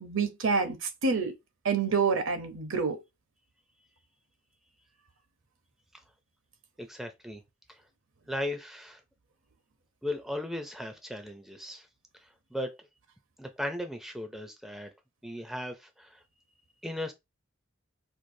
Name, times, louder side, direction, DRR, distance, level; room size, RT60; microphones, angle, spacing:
voice 1, 0.0-1.3 1.6-3.0, right 5 dB, 70° right, 0.8 m, -27 dB
voice 2, 6.8-7.4 7.7-7.8 8.3-9.0 10.0-11.9 12.5-12.9 13.4-14.9 15.2-16.2 16.8-17.1, left 1 dB, ahead, 0.4 m, -37 dB
4.5 x 2.4 x 2.6 m
head